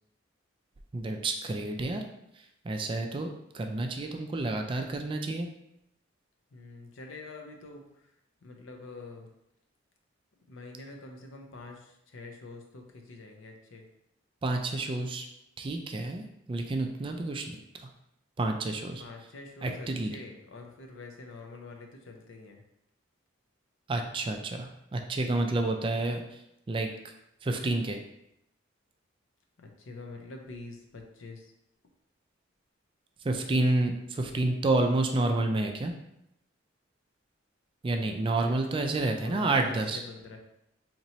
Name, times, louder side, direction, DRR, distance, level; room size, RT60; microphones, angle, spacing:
voice 1, 0.9-2.0 2.3-5.5 14.4-15.3 15.6-17.6 18.4-19.0 19.6-20.1 23.9-26.4 26.7-26.9 27.4-28.0 33.2-35.9 37.8-40.0, right 2 dB, 25° right, 4 dB, 0.3 m, -29 dB
voice 2, 6.5-7.8 8.4-9.3 10.5-13.8 18.7-22.6 29.6-31.5 38.4-38.6 39.1-40.4, left 3 dB, 80° left, 3 dB, 0.6 m, -45 dB
4.2 x 2.9 x 2.7 m, 0.82 s
head